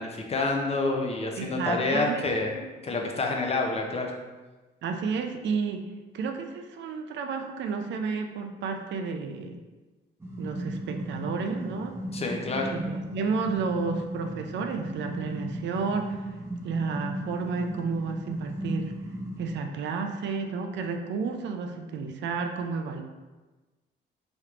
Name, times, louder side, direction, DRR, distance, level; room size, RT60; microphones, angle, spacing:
voice 1, 0.0-2.6 2.8-4.1 12.1-12.7, left 3 dB, 30° left, 1 dB, 0.5 m, -28 dB
voice 2, 1.4-2.2 2.5-3.1 4.8-5.9 6.1-9.6 10.4-11.9 12.7-16.2 16.6-18.9 19.4-23.0, right 5 dB, 65° right, 5 dB, 0.4 m, -31 dB
sound 1, 10.2-19.6, equal, 10° right, 0.6 m, -36 dB
3.3 x 3.0 x 2.4 m, 1.2 s
cardioid pair, 90°, 20 cm